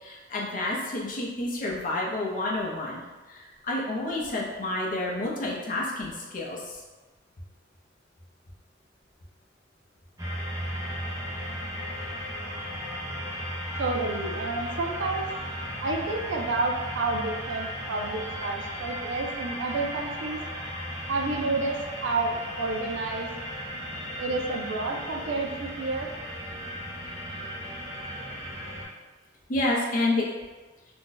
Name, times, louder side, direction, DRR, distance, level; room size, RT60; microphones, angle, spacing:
voice 1, 0.0-3.0 3.3-6.8 29.5-30.2, left 2 dB, 45° left, -3 dB, 0.6 m, -29 dB
sound 1, 10.2-28.9, equal, 15° right, 0.5 m, -36 dB
voice 2, 13.8-15.2 15.8-20.4 21.1-23.3 24.2-26.1, right 3 dB, 75° right, 2 dB, 0.4 m, -30 dB
2.5 x 2.2 x 3.8 m, 1.2 s
head